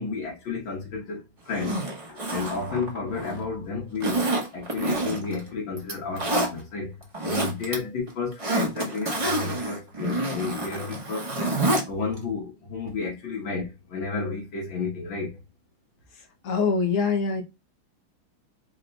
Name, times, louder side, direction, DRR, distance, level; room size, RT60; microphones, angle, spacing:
voice 1, 0.0-1.8 2.1-4.2 4.5-11.2 11.9-15.4, left 4 dB, 75° left, 1.9 m, -32 dB
Zipper (clothing), 1.5-3.4 4.0-5.4 5.8-6.5 7.0-7.7 8.1-11.8 12.2-12.3, right 2 dB, 30° right, 0.6 m, -28 dB
voice 2, 16.1-17.4, left 5 dB, 55° left, 0.9 m, -25 dB
4.2 x 2.2 x 3.8 m
omnidirectional pair, 2.2 m